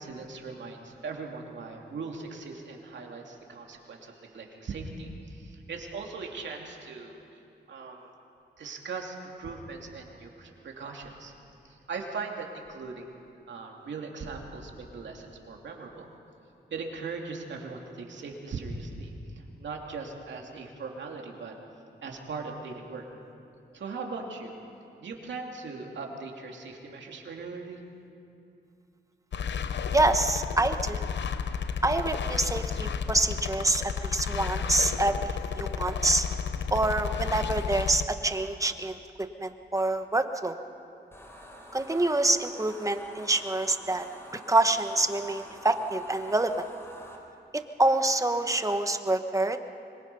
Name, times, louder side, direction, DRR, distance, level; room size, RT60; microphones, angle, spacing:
voice 1, 0.0-7.2 7.7-8.1 8.6-11.3 11.6-13.2 13.5-16.1 16.7-21.5 22.0-23.0 23.7-24.6 25.0-27.8, right 4 dB, 75° right, 1 dB, 2.7 m, -39 dB
sound 1, 29.3-38.0, left 6 dB, 75° left, 0.9 m, -32 dB
voice 2, 29.9-31.0 31.8-36.3 36.7-40.6 41.7-44.1 44.5-46.5 47.5-49.6, right 2 dB, 15° right, 7 dB, 1.3 m, -26 dB
sound 2, 41.1-47.2, equal, 15° left, 4.0 m, -47 dB
25.0 x 22.0 x 5.5 m, 2.7 s
cardioid pair, 85°, 19 cm